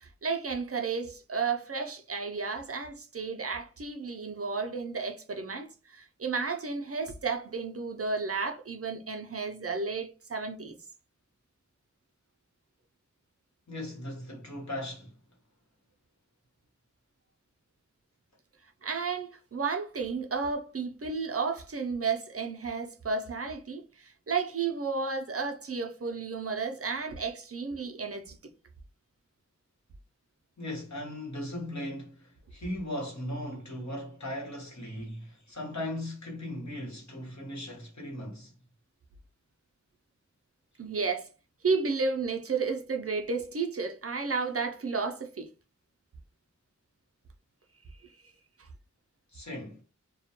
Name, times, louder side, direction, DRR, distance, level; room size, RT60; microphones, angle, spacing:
voice 1, 0.0-10.8 18.8-28.4 40.8-41.3 41.6-45.5, right 4 dB, 50° right, 0.4 m, -32 dB
voice 2, 13.7-15.1 30.6-38.6 49.3-49.8, left 1 dB, 65° left, 1.1 m, -38 dB
2.2 x 2.1 x 2.8 m
wide cardioid pair, 45°, 31 cm